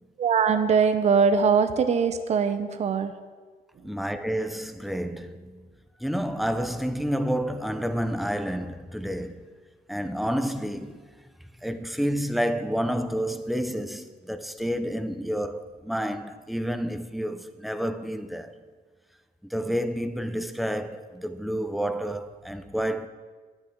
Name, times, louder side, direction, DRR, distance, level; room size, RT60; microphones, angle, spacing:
voice 1, 0.2-3.1, right 6 dB, 40° right, 0.8 m, -22 dB
voice 2, 3.8-5.7 6.0-9.4 9.9-11.0 11.6-18.5 19.5-23.1, equal, ahead, 0.7 m, -29 dB
10.5 x 7.1 x 8.4 m
cardioid pair, 110°, 17 cm